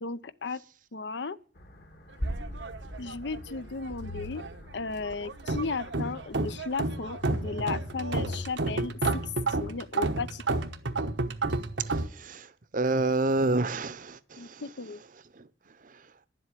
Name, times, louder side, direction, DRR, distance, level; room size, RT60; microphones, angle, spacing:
voice 1, 0.0-0.6 0.9-1.4 3.0-4.4 4.7-9.3 9.6-10.6 14.4-15.0, left 4 dB, 75° left, 0.7 m, -35 dB
sound 1, 1.6-8.5, left 1 dB, 60° left, 1.9 m, -41 dB
sound 2, 2.2-3.6 3.8-4.6 5.0-12.1, right 2 dB, 90° right, 1.1 m, -31 dB
voice 2, 11.9-14.6 15.3-15.5 15.8-16.0, right 2 dB, 45° right, 0.7 m, -29 dB
11.0 x 7.8 x 9.8 m
head